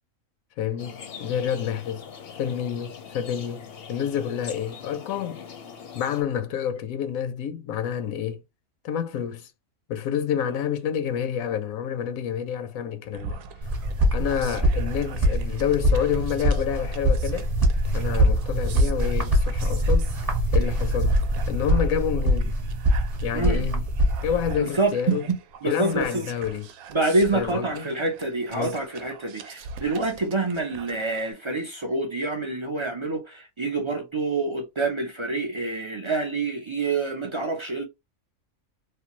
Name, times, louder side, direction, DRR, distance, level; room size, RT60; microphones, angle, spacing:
voice 1, 0.6-2.1 2.4-5.5 5.9-8.4 8.8-9.5 9.9-13.4 14.1-17.5 17.9-20.1 20.5-21.2 21.5-22.6 23.2-23.8 24.2-25.2 25.6-26.7 27.3-27.8 28.5-28.7, left 8 dB, 80° left, 1.0 m, -28 dB
sound 1, 0.8-6.2, left 7 dB, 55° left, 0.7 m, -42 dB
sound 2, 13.1-31.3, right 5 dB, 75° right, 1.0 m, -43 dB
sound 3, 13.6-24.5, equal, 30° right, 1.0 m, -23 dB
voice 2, 23.3-23.8 24.6-26.3 26.9-37.8, right 3 dB, 50° right, 0.3 m, -27 dB
3.2 x 2.2 x 2.8 m
omnidirectional pair, 1.5 m